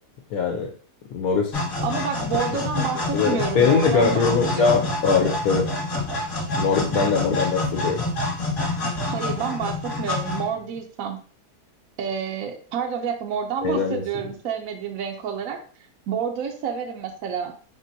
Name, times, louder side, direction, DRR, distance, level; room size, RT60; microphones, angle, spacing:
voice 1, 0.3-0.7 1.1-1.5 3.1-5.7 6.5-8.0 13.6-14.0, left 5 dB, 70° left, 1 dB, 1.0 m, -21 dB
sound 1, 1.5-10.8, left 2 dB, 35° left, 1.1 m, -27 dB
voice 2, 1.8-4.9 9.1-11.2 12.0-15.6 16.1-17.5, right 7 dB, 70° right, 2 dB, 0.9 m, -29 dB
4.2 x 3.6 x 2.7 m, 0.43 s
omnidirectional pair, 1.7 m